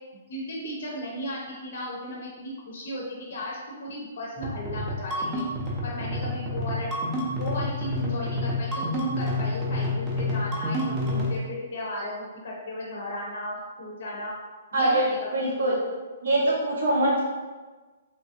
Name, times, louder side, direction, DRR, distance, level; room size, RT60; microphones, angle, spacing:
voice 1, 0.3-5.4 5.8-6.9 7.4-14.3 14.7-15.3, left 1 dB, 50° left, -4 dB, 0.6 m, -35 dB
sound 1, 4.4-11.4, left 1 dB, 10° right, 0.4 m, -29 dB
voice 2, 15.3-15.7 16.2-17.2, right 1 dB, 70° right, -4 dB, 0.8 m, -23 dB
3.0 x 2.4 x 2.6 m, 1.3 s
hypercardioid pair, 175°, 0 cm